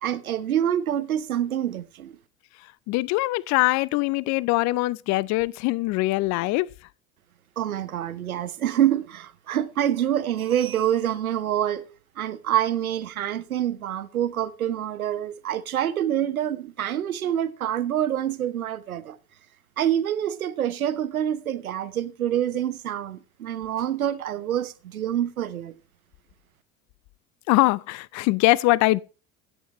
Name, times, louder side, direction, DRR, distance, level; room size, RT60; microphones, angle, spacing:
voice 1, 0.0-2.2 7.6-11.9 12.2-19.2 19.8-25.7, right 10 dB, 80° right, 1.0 m, -26 dB
voice 2, 2.6-6.7 27.5-29.0, left 20 dB, 45° left, 0.5 m, -22 dB
16.0 x 8.1 x 3.0 m
figure-of-eight pair, 70°, 42 cm